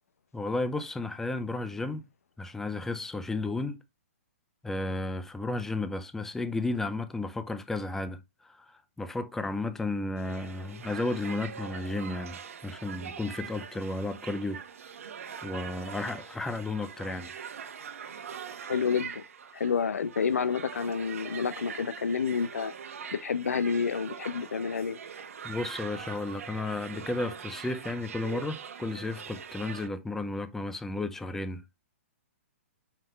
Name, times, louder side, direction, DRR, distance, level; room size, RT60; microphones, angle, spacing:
voice 1, 0.3-2.0 2.4-3.8 4.6-14.6 15.4-17.3 25.4-31.6, left 2 dB, 5° left, 0.6 m, -33 dB
sound 1, 10.2-29.9, right 7 dB, 70° right, 1.4 m, -43 dB
voice 2, 18.7-19.2 19.5-22.7 23.1-25.0, left 6 dB, 85° left, 0.8 m, -29 dB
5.8 x 5.2 x 3.2 m
hypercardioid pair, 140°, 8 cm